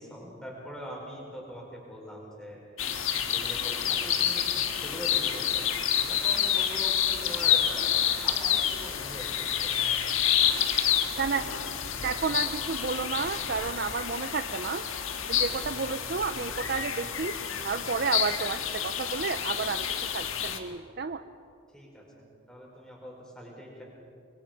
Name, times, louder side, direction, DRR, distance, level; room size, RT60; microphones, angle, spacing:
voice 1, 0.0-10.1 10.5-10.8 11.2-11.6 11.9-12.4 21.7-22.1 22.5-23.8, equal, 5° left, -3 dB, 5.1 m, -43 dB
sound 1, 2.8-20.6, left 9 dB, 75° left, 1.5 m, -28 dB
voice 2, 12.0-14.9 15.2-17.4 17.6-19.9 20.1-21.2, right 5 dB, 50° right, 10 dB, 0.5 m, -31 dB
25.0 x 23.5 x 5.3 m, 2.5 s
head